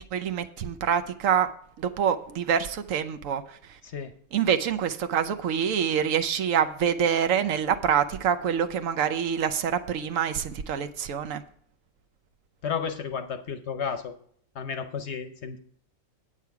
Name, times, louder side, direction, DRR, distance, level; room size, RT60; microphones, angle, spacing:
voice 1, 0.1-1.5 1.8-3.8 4.3-11.4, right 8 dB, 70° right, 10 dB, 1.0 m, -26 dB
voice 2, 12.6-14.1 14.5-15.6, left 6 dB, 55° left, 8 dB, 0.9 m, -32 dB
8.7 x 8.4 x 4.7 m, 0.63 s
omnidirectional pair, 1.5 m